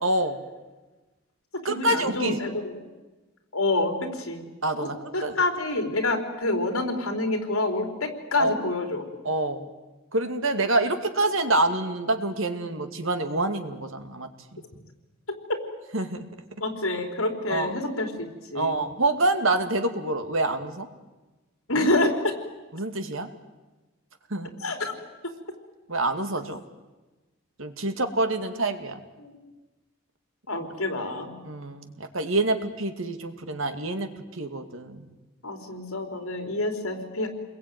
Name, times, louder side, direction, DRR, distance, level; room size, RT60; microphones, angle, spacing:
voice 1, 0.0-0.4 1.6-2.4 4.6-5.4 8.4-8.5 9.2-9.7 10.1-14.3 14.5-14.6 15.9-16.2 17.5-17.7 18.5-20.9 21.7-21.9 22.7-23.3 24.3-24.5 25.9-26.6 27.6-29.0 31.4-35.0, right 2 dB, 70° right, 7 dB, 2.3 m, -26 dB
voice 2, 1.5-2.8 3.5-4.4 4.8-9.0 15.3-15.4 16.6-18.8 21.7-22.4 24.6-24.9 29.2-29.4 30.5-31.3 35.4-37.3, left 2 dB, 75° left, 5 dB, 4.4 m, -27 dB
29.0 x 21.5 x 9.5 m, 1.2 s
head